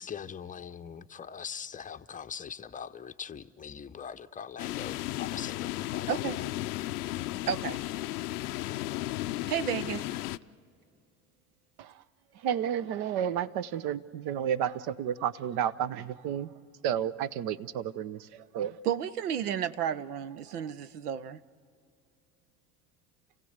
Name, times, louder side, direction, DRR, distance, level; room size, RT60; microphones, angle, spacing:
voice 1, 0.0-6.4, left 7 dB, 20° left, 0.7 m, -42 dB
sound 1, 4.6-10.4, left 16 dB, 85° left, 0.5 m, -34 dB
voice 2, 6.1-6.4 7.5-7.8 9.5-10.0 18.8-21.4, right 9 dB, 90° right, 0.7 m, -32 dB
voice 3, 12.3-16.6 16.8-18.8, right 9 dB, 60° right, 0.8 m, -31 dB
29.5 x 16.0 x 8.0 m
hypercardioid pair, 70°, 44 cm